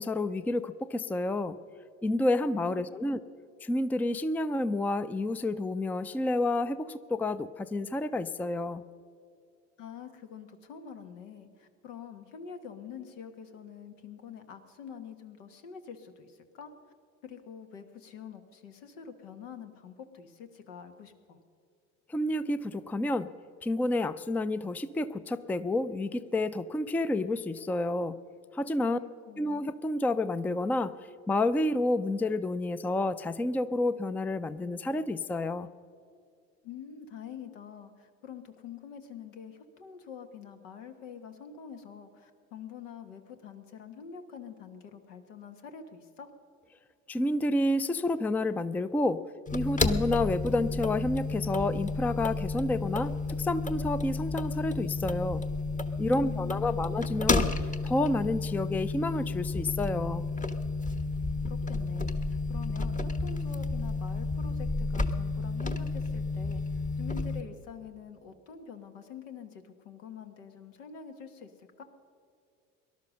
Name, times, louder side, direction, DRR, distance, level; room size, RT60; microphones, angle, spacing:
voice 1, 0.0-1.6 2.0-3.2 3.6-8.8 22.1-23.3 23.6-28.2 28.5-29.0 29.4-30.9 31.3-35.7 47.1-55.5 56.0-60.3, left 2 dB, 5° left, 14 dB, 0.4 m, -29 dB
voice 2, 2.5-3.0 9.8-16.7 17.2-21.4 28.9-29.6 36.6-46.3 56.2-57.0 61.5-71.8, left 7 dB, 80° left, 7 dB, 1.5 m, -46 dB
sound 1, 49.5-67.4, left 3 dB, 20° left, 1.1 m, -31 dB
18.5 x 11.5 x 6.4 m, 2.4 s
hypercardioid pair, 75°, 37 cm